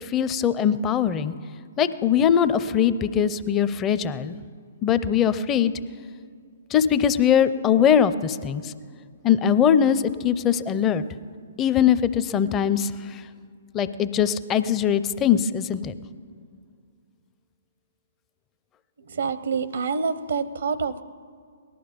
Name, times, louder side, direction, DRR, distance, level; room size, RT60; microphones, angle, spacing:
voice 1, 0.0-1.3 1.8-4.3 4.8-5.7 6.7-8.7 9.2-11.0 11.6-12.9 13.7-15.9, left 8 dB, 20° left, 12 dB, 0.6 m, -21 dB
voice 2, 19.1-21.0, right 5 dB, 70° right, 14 dB, 0.7 m, -27 dB
18.5 x 12.0 x 5.2 m, 2.1 s
figure-of-eight pair, 130°, 0 cm